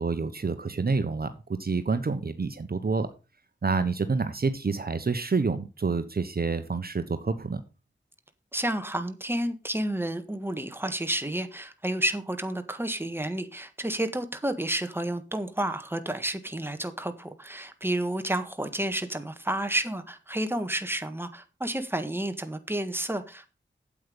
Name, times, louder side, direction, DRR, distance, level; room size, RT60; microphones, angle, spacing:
voice 1, 0.0-3.1 3.6-7.6, right 4 dB, 50° right, 1.0 m, -28 dB
voice 2, 8.5-23.5, right 1 dB, 10° right, 1.7 m, -30 dB
8.7 x 8.2 x 5.2 m
cardioid pair, 45°, 20 cm